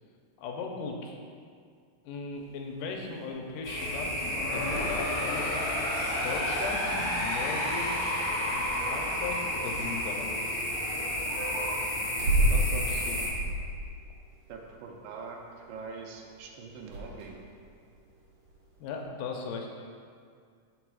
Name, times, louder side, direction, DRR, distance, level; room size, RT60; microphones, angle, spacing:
voice 1, 0.4-1.2 2.0-5.6 6.2-8.0 8.4-10.5 12.4-13.3 18.8-19.7, left 4 dB, 80° left, 1 dB, 2.2 m, -38 dB
sound 1, 2.3-19.0, right 1 dB, 65° right, 2.6 m, -36 dB
sound 2, 3.6-13.3, equal, 45° left, 1.2 m, -32 dB
sound 3, 4.1-11.0, left 1 dB, 65° left, 2.3 m, -34 dB
voice 2, 14.5-15.4 15.7-17.4, right 5 dB, 85° right, 1 dB, 2.4 m, -43 dB
5.6 x 4.0 x 6.1 m, 2.2 s
omnidirectional pair, 3.8 m